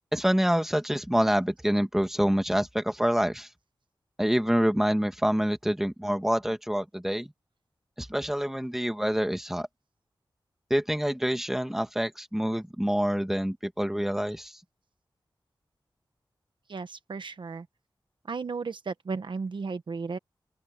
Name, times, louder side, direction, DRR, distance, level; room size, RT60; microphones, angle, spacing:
voice 1, 0.1-3.5 4.2-7.3 8.0-9.7 10.7-14.5, equal, 5° right, 2.0 m, -26 dB
voice 2, 16.7-17.6 18.3-20.2, right 4 dB, 65° right, 1.1 m, -34 dB
open air
wide cardioid pair, 100°, 9 cm